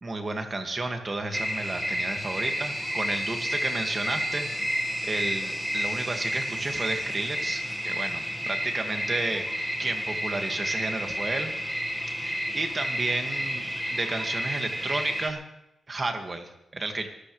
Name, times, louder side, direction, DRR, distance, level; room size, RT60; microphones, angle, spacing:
voice 1, 0.0-4.5 4.8-11.5 12.0-13.6 13.9-15.4 15.9-17.1, right 2 dB, 30° right, 5 dB, 2.0 m, -32 dB
sound 1, 1.3-15.3, equal, ahead, 1.7 m, -31 dB
24.0 x 13.5 x 3.3 m, 0.88 s
cardioid pair, 105°, 0 cm